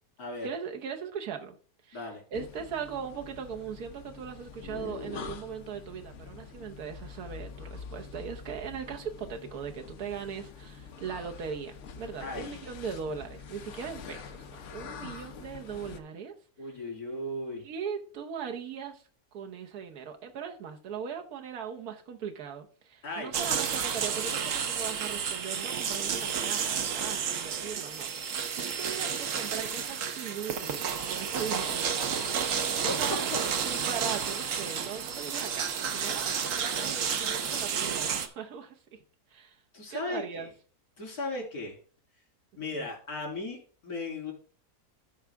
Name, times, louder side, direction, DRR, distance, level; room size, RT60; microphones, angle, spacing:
voice 1, 0.4-1.6 1.8-2.0 2.3-14.3 14.7-16.3 17.6-19.0 19.3-31.9 32.4-39.0 39.3-39.6 39.9-40.5 42.7-42.9, right 7 dB, 85° right, 1.5 m, -39 dB
sound 1, 2.3-16.0, left 6 dB, 60° left, 1.0 m, -45 dB
voice 2, 12.2-12.8 16.6-17.6 23.0-23.3 32.8-33.4 39.7-40.5 41.0-41.8 42.6-44.3, left 2 dB, 90° left, 3.5 m, -36 dB
sound 2, 23.3-38.3, right 7 dB, 65° right, 1.1 m, -31 dB
12.5 x 4.8 x 3.5 m
omnidirectional pair, 1.6 m